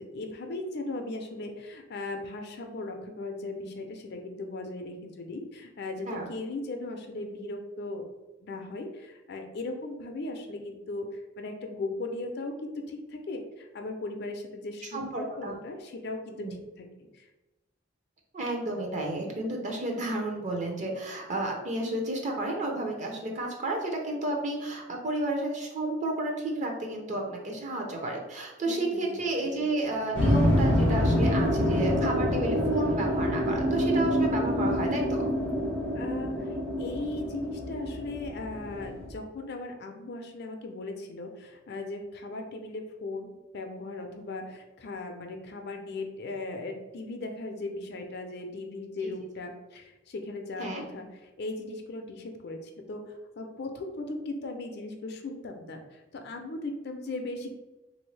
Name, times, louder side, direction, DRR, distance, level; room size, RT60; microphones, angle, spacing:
voice 1, 0.0-8.0 8.4-16.5 16.8-16.9 17.1-17.3 28.6-29.6 35.9-57.5, left 2 dB, 55° left, 4 dB, 0.5 m, -38 dB
voice 2, 14.9-15.6 16.4-16.5 18.3-35.3 49.0-49.1 50.6-50.8, right 1 dB, 40° right, 1 dB, 0.7 m, -31 dB
sound 1, 30.1-39.1, equal, 85° right, 1.4 m, -26 dB
3.5 x 2.6 x 3.1 m, 1.1 s
head